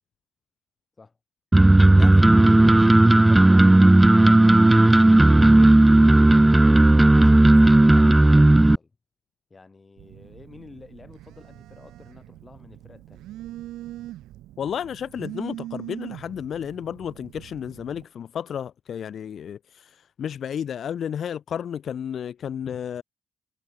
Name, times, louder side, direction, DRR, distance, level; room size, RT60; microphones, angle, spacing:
sound 1, 1.5-8.7, right 2 dB, 15° right, 0.4 m, -14 dB
voice 1, 1.9-6.7 7.1-8.9 9.5-13.3, left 3 dB, 30° left, 6.6 m, -49 dB
Telephone, 10.0-18.0, right 14 dB, 85° right, 7.0 m, -41 dB
voice 2, 14.6-23.0, left 8 dB, 65° left, 0.6 m, -32 dB
supercardioid pair, 60°, 0 cm